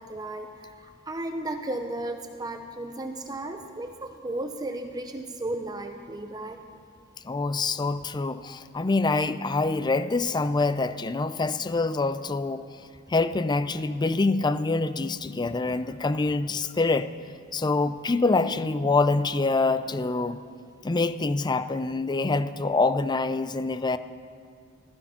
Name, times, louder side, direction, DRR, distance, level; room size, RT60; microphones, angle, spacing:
voice 1, 0.0-6.6, right 1 dB, 20° right, 5 dB, 0.7 m, -34 dB
voice 2, 7.2-12.7 13.1-17.1 17.5-20.4 20.8-24.0, left 3 dB, 20° left, 13 dB, 0.4 m, -25 dB
15.5 x 14.5 x 5.7 m, 2.3 s
head